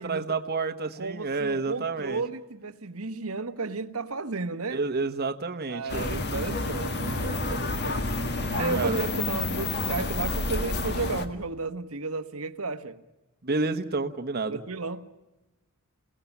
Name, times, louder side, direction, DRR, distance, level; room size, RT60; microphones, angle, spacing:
voice 1, 0.0-2.2 4.7-6.1 8.7-9.0 13.4-14.6, right 3 dB, 45° right, 1.2 m, -29 dB
voice 2, 1.0-4.8 5.7-13.0 14.5-15.1, right 4 dB, 80° right, 1.4 m, -33 dB
sound 1, 5.9-11.3, left 2 dB, 50° left, 1.9 m, -29 dB
29.0 x 17.5 x 7.3 m
head